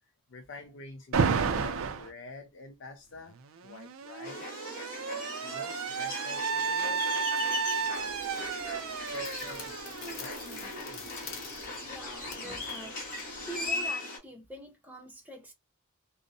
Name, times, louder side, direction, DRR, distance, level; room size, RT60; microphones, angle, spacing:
voice 1, 0.3-3.4 3.6-4.6 5.4-7.3 7.9-8.9 9.1-9.7 10.2-11.0, left 3 dB, 60° left, 0.4 m, -48 dB
Alarm, 1.1-2.1 3.3-11.0, right 5 dB, 80° right, 0.4 m, -32 dB
sound 1, 4.2-14.2, left 2 dB, 40° left, 1.1 m, -39 dB
sound 2, 7.9-13.9, left 5 dB, 80° left, 0.8 m, -48 dB
voice 2, 11.2-13.0 13.4-15.5, right 1 dB, 10° right, 0.6 m, -45 dB
2.6 x 2.0 x 2.6 m
head